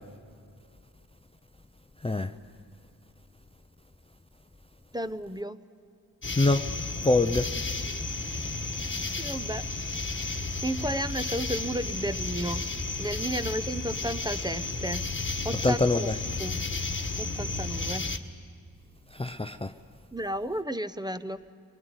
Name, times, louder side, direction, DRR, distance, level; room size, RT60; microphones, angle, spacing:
voice 1, 4.9-5.6 9.2-9.6 10.2-12.7 13.0-16.6 17.2-18.1 20.1-21.4, right 1 dB, 10° right, 0.9 m, -33 dB
sound 1, 6.2-18.2, left 3 dB, 30° left, 1.7 m, -33 dB
voice 2, 7.0-7.5 15.6-16.1 19.1-19.7, left 2 dB, 15° left, 0.6 m, -24 dB
23.5 x 20.5 x 9.7 m
cardioid pair, 55°, 39 cm